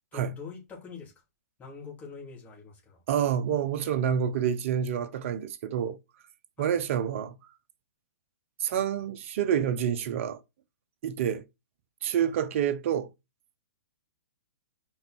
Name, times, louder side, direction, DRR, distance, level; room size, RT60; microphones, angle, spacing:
voice 1, 0.1-1.1 1.6-3.0 6.6-6.7 12.2-12.3, left 5 dB, 15° left, 3.3 m, -44 dB
voice 2, 3.1-6.0 6.6-7.3 8.6-10.4 11.0-11.4 12.0-13.1, right 9 dB, 50° right, 0.9 m, -28 dB
5.2 x 5.1 x 4.5 m
hypercardioid pair, 130°, 9 cm